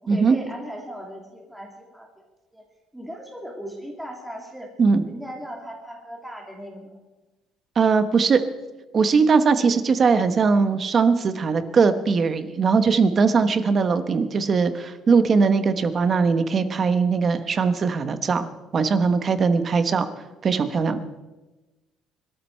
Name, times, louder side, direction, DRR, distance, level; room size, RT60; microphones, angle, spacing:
voice 1, 0.0-2.3 2.5-2.6 2.9-4.7 5.1-7.0, equal, 5° right, -1 dB, 2.4 m, -38 dB
voice 2, 7.8-8.4 8.9-18.5 18.7-20.1 20.4-21.0, right 5 dB, 30° right, 10 dB, 1.1 m, -20 dB
24.5 x 13.0 x 4.4 m, 1.1 s
cardioid pair, 150°, 0 cm